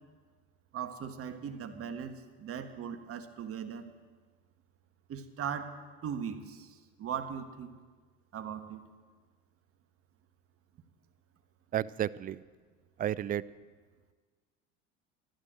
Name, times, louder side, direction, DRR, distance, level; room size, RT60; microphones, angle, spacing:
voice 1, 0.7-3.9 5.1-7.8 8.3-8.8, right 7 dB, 45° right, 8 dB, 1.5 m, -39 dB
voice 2, 11.7-12.4 13.0-13.4, right 11 dB, 25° right, 19 dB, 0.4 m, -32 dB
12.5 x 12.0 x 7.7 m, 1.4 s
hypercardioid pair, 80°, 33 cm